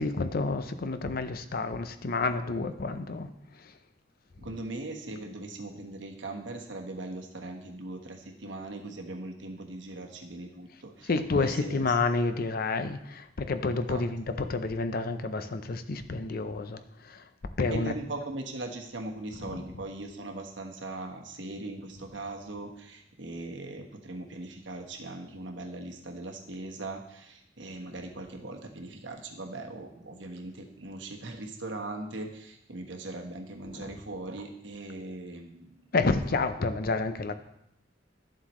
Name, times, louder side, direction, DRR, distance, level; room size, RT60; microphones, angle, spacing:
voice 1, 0.0-3.3 11.1-16.8 17.1-17.2 17.6-17.9 19.5-19.6 33.7-33.9 35.9-37.3, left 3 dB, 55° left, 10 dB, 0.6 m, -29 dB
voice 2, 4.4-12.0 13.9-14.0 17.6-35.7, right 2 dB, 90° right, 3 dB, 1.3 m, -40 dB
11.0 x 7.5 x 3.1 m, 0.80 s
head